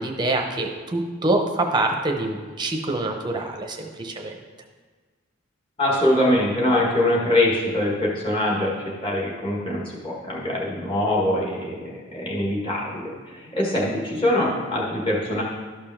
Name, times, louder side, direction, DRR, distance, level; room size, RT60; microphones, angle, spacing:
voice 1, 0.0-4.3, right 2 dB, 20° right, 3 dB, 0.8 m, -25 dB
voice 2, 5.8-15.4, left 1 dB, 25° left, -4 dB, 1.7 m, -23 dB
12.5 x 5.1 x 3.6 m, 1.4 s
head